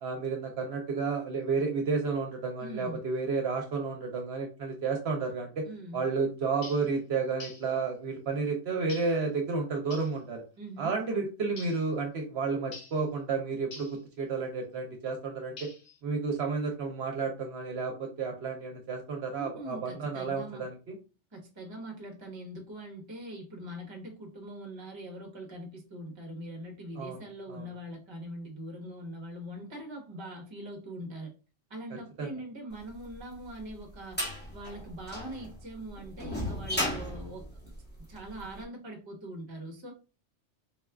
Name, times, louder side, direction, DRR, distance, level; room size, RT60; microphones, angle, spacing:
voice 1, 0.0-5.6 5.9-10.4 10.8-15.7 16.0-21.0 27.0-27.2 27.5-27.7 32.2-32.3, right 4 dB, 65° right, 2 dB, 0.9 m, -31 dB
voice 2, 2.6-3.0 5.6-6.0 10.6-10.9 19.4-20.6 21.3-31.3 31.7-37.5 38.1-39.9, right 1 dB, 25° right, 1 dB, 0.8 m, -42 dB
sound 1, 6.6-6.9 7.4-7.7 8.9-9.2 9.9-10.2 11.6-11.9 12.7-13.0 13.7-14.0 15.6-16.0, left 4 dB, 75° left, 1.1 m, -46 dB
sound 2, 33.1-38.4, left 1 dB, 10° left, 0.9 m, -35 dB
4.1 x 2.3 x 2.2 m, 0.33 s
omnidirectional pair, 1.2 m